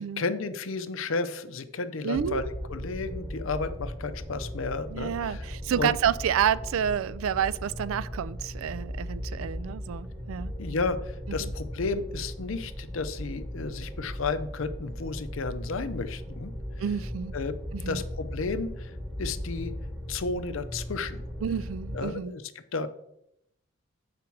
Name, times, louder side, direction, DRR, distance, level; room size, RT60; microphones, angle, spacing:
voice 1, 0.0-5.9 10.6-16.5 17.3-17.5 17.9-18.9 19.2-19.7 20.1-21.2 21.9-22.4 22.7-22.9, left 4 dB, 75° left, 0.6 m, -32 dB
voice 2, 2.0-2.4 4.9-10.5 11.3-11.5 16.8-17.3 17.7-18.0 21.4-22.3, right 8 dB, 80° right, 0.3 m, -29 dB
sound 1, 2.1-22.0, equal, 5° right, 1.0 m, -37 dB
7.1 x 5.0 x 4.6 m
head